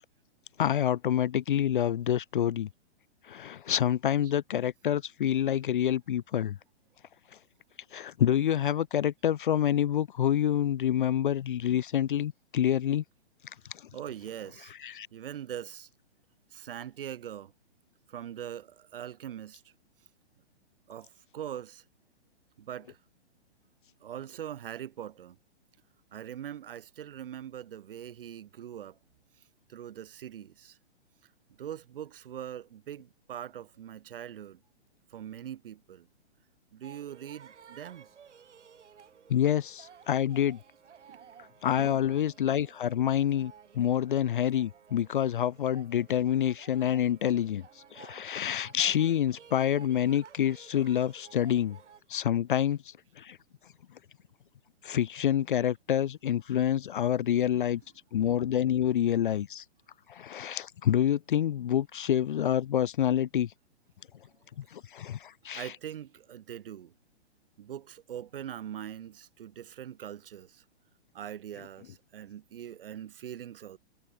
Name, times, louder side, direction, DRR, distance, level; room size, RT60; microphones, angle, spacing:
voice 1, 0.6-2.7 3.3-6.6 7.9-13.0 14.8-15.1 39.3-40.6 41.6-47.7 47.9-51.8 52.1-53.4 54.8-57.8 58.1-59.6 60.1-63.5 64.6-65.7, left 10 dB, 50° left, 0.6 m, -27 dB
voice 2, 13.9-15.9 16.5-17.5 18.1-19.6 20.9-21.8 22.6-23.0 24.0-25.4 26.1-29.0 29.7-30.8 31.6-34.6 35.1-36.1 36.7-38.1 41.1-41.2 41.7-42.2 57.3-57.8 65.5-66.9 67.6-70.6 71.1-73.8, right 10 dB, 50° right, 1.5 m, -42 dB
sound 1, 36.8-52.0, right 7 dB, 90° right, 2.9 m, -55 dB
hypercardioid pair, 170°, 34 cm